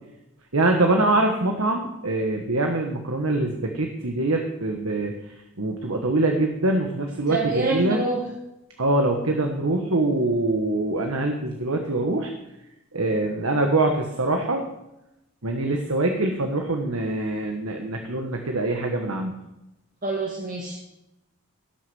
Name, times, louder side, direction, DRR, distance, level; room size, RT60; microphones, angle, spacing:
voice 1, 0.5-8.0 8.8-12.3 12.9-14.6 15.4-19.3, right 2 dB, 80° right, 3 dB, 1.4 m, -24 dB
voice 2, 7.3-8.2 20.0-20.8, right 2 dB, 40° right, -1 dB, 1.6 m, -26 dB
17.0 x 6.4 x 6.2 m, 0.91 s
head